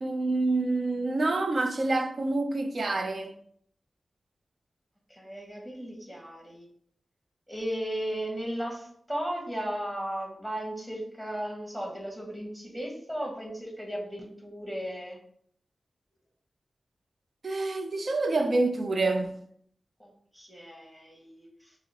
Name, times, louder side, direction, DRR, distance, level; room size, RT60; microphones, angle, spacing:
voice 1, 0.0-3.3 17.4-19.4, right 2 dB, 60° right, 0.5 m, -27 dB
voice 2, 5.1-6.7 7.5-15.2 20.0-21.7, equal, 5° right, 1.2 m, -36 dB
6.0 x 2.0 x 2.9 m
cardioid pair, 60°, 0 cm